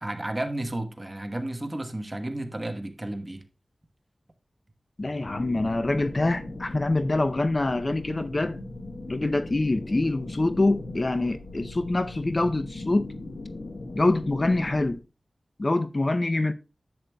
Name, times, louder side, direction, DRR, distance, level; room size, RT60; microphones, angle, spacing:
voice 1, 0.0-3.4, right 1 dB, 25° right, 1.1 m, -32 dB
voice 2, 5.0-8.6 9.1-13.1 13.9-15.0 15.6-16.5, left 2 dB, 40° left, 0.5 m, -25 dB
sound 1, 5.3-15.0, left 2 dB, 80° left, 1.1 m, -39 dB
10.5 x 7.7 x 2.2 m
wide cardioid pair, 60°, 0 cm